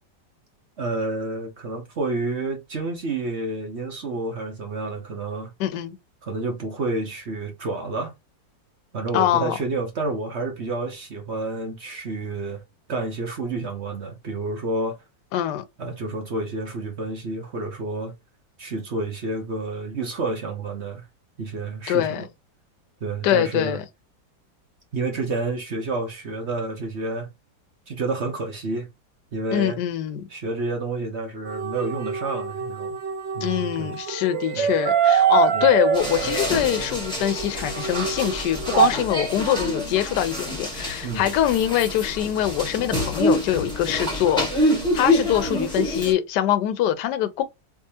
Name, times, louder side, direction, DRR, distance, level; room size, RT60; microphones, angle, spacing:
voice 1, 0.8-5.5 6.2-8.1 8.9-12.6 12.9-15.0 15.8-18.1 18.6-21.1 21.4-22.3 23.0-23.8 24.9-27.3 27.9-28.9 29.3-29.8 30.3-33.0 33.3-33.9 34.6-34.7 35.5-35.7 41.0-41.3, right 3 dB, 50° right, 0.9 m, -29 dB
voice 2, 5.6-6.0 9.1-9.6 15.3-15.6 21.9-22.2 23.2-23.8 29.5-30.2 33.4-47.4, left 11 dB, 75° left, 1.2 m, -23 dB
sound 1, 31.5-38.9, right 8 dB, 80° right, 1.5 m, -24 dB
sound 2, 35.9-46.1, left 1 dB, 5° left, 1.1 m, -26 dB
3.6 x 2.9 x 2.7 m
omnidirectional pair, 2.0 m